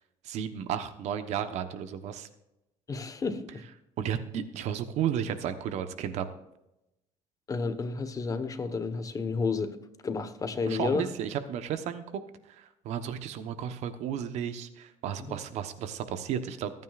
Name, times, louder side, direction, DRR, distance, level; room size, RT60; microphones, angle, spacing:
voice 1, 0.2-2.3 4.0-6.3 10.7-12.2 12.5-16.7, right 9 dB, 70° right, 10 dB, 1.1 m, -33 dB
voice 2, 2.9-3.6 7.5-9.8 10.0-11.1 15.3-15.4, left 4 dB, 30° left, 10 dB, 1.3 m, -31 dB
24.0 x 9.3 x 2.5 m, 0.88 s
cardioid pair, 110°, 12 cm